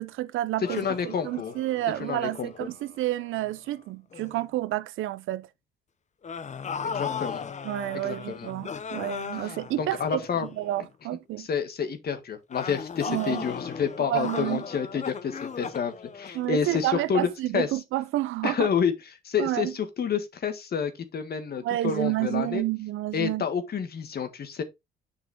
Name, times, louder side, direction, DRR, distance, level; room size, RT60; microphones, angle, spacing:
voice 1, 0.0-5.5 7.6-11.5 13.1-13.5 14.0-14.6 16.3-18.7 19.4-19.7 21.6-23.5, right 15 dB, 85° right, 0.6 m, -30 dB
sound 1, 0.6-3.7 4.1-4.4 6.2-10.8 12.5-17.1, left 6 dB, 35° left, 0.8 m, -38 dB
voice 2, 0.7-1.5 2.0-2.5 6.8-7.4 7.9-8.5 9.4-10.5 11.4-17.7 18.4-18.9 19.2-22.6 23.1-24.6, left 7 dB, 50° left, 1.5 m, -29 dB
7.3 x 5.5 x 3.5 m
cardioid pair, 90°, 20 cm